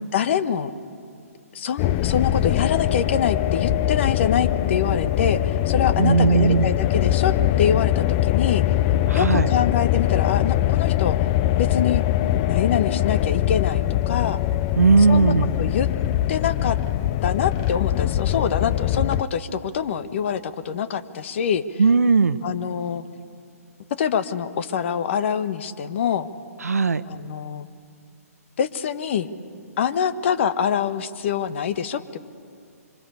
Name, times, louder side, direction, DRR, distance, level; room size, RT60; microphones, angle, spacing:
voice 1, 0.1-0.7 1.5-8.8 9.1-11.2 11.6-12.0 12.5-14.4 15.1-15.9 16.3-16.8 17.2-21.8 22.4-23.0 24.0-26.3 27.1-27.7 28.6-29.3 29.8-32.2, left 7 dB, 50° left, 12 dB, 1.4 m, -25 dB
sound 1, 1.8-19.2, left 13 dB, 30° left, 0.6 m, -22 dB
voice 2, 6.0-6.7 9.1-9.5 14.8-15.5 21.8-22.4 26.6-27.0, right 4 dB, 75° right, 13 dB, 1.1 m, -17 dB
26.5 x 25.0 x 8.4 m, 2.3 s
figure-of-eight pair, 130°, 8 cm